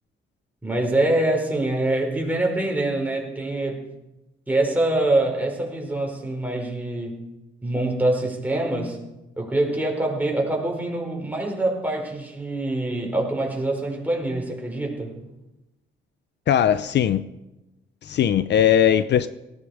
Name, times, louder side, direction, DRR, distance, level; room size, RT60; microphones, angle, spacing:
voice 1, 0.6-3.8 4.5-7.2 7.6-9.0 9.4-15.2, right 2 dB, 10° right, 4.7 m, -24 dB
voice 2, 16.5-17.2 18.0-19.3, left 9 dB, 60° left, 0.7 m, -19 dB
18.0 x 15.5 x 5.0 m
cardioid pair, 90°, 20 cm